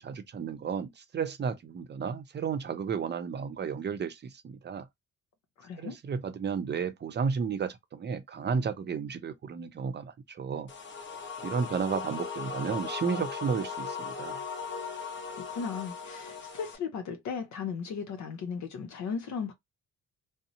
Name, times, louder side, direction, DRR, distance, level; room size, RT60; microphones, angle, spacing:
voice 1, 0.0-4.9 5.8-10.7 11.4-14.4, right 6 dB, 35° right, 0.6 m, -33 dB
voice 2, 5.6-6.0 15.3-19.5, left 6 dB, 65° left, 0.7 m, -36 dB
sound 1, 10.7-16.8, left 5 dB, 40° left, 0.8 m, -38 dB
2.7 x 2.1 x 2.6 m
cardioid pair, 90°, 30 cm